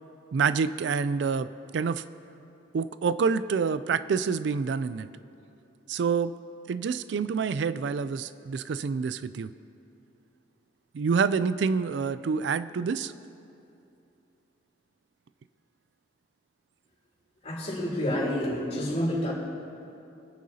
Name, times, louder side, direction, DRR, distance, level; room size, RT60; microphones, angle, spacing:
voice 1, 0.3-2.0 2.7-5.1 5.9-6.3 6.7-9.5 10.9-13.1, right 5 dB, 75° right, 14 dB, 0.3 m, -27 dB
voice 2, 17.4-19.3, left 1 dB, 35° left, -5 dB, 3.3 m, -28 dB
25.5 x 9.3 x 2.8 m, 2.7 s
head